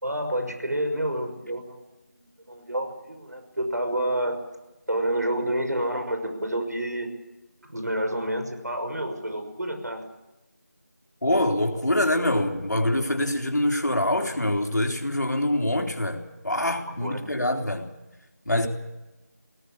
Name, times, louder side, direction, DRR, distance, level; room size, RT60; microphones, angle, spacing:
voice 1, 0.0-1.9 2.1-4.4 4.9-7.1 7.6-10.0 16.9-17.2, right 1 dB, 70° right, 6 dB, 6.1 m, -29 dB
voice 2, 11.2-17.9 18.5-18.7, left 1 dB, 85° left, 3 dB, 3.7 m, -25 dB
20.0 x 17.5 x 8.6 m, 1.0 s
figure-of-eight pair, 175°, 9 cm